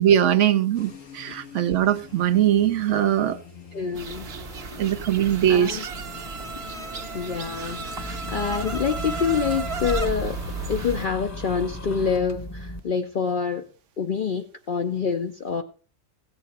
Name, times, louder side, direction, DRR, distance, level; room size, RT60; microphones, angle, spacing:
voice 1, 0.0-3.4 4.8-5.9, right 10 dB, 70° right, 1.0 m, -21 dB
sound 1, 0.7-12.1, left 6 dB, 85° left, 1.5 m, -43 dB
voice 2, 3.7-4.3 4.6-4.9 5.5-5.8 7.1-10.4 10.7-13.6 14.0-15.6, left 6 dB, 50° left, 0.7 m, -27 dB
sound 2, 3.9-11.1, right 4 dB, 55° right, 1.2 m, -34 dB
sound 3, 7.9-12.8, equal, 15° left, 0.8 m, -35 dB
16.5 x 7.7 x 4.3 m
omnidirectional pair, 1.3 m